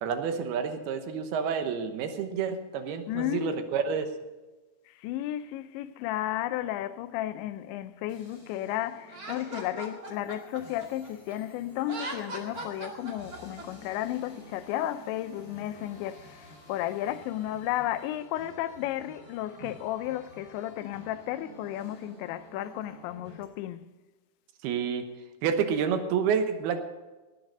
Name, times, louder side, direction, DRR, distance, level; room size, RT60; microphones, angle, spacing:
voice 1, 0.0-4.1 19.6-19.7 24.6-25.1 25.4-26.8, right 7 dB, 75° right, 2.8 m, -29 dB
voice 2, 3.1-3.7 4.9-23.9, left 13 dB, 90° left, 3.0 m, -33 dB
sound 1, 8.1-23.4, right 2 dB, 15° right, 3.2 m, -52 dB
Laughter, 9.1-11.4 11.8-13.6, right 2 dB, 40° right, 1.3 m, -39 dB
18.0 x 9.5 x 5.4 m
omnidirectional pair, 5.1 m